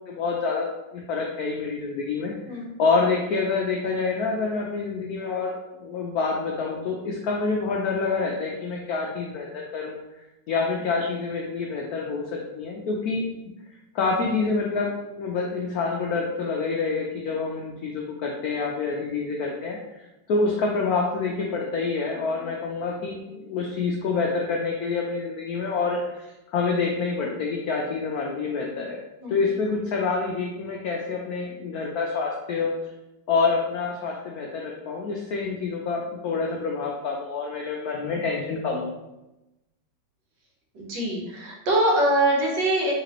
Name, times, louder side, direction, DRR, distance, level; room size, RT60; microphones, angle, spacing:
voice 1, 0.1-0.7 0.9-10.0 10.5-13.2 13.9-14.9 15.2-19.8 20.3-29.0 29.3-32.7 33.3-38.9, left 4 dB, 80° left, -1 dB, 0.8 m, -27 dB
voice 2, 40.7-42.9, right 1 dB, 65° right, -2 dB, 1.5 m, -23 dB
4.0 x 3.3 x 2.9 m, 0.98 s
omnidirectional pair, 2.2 m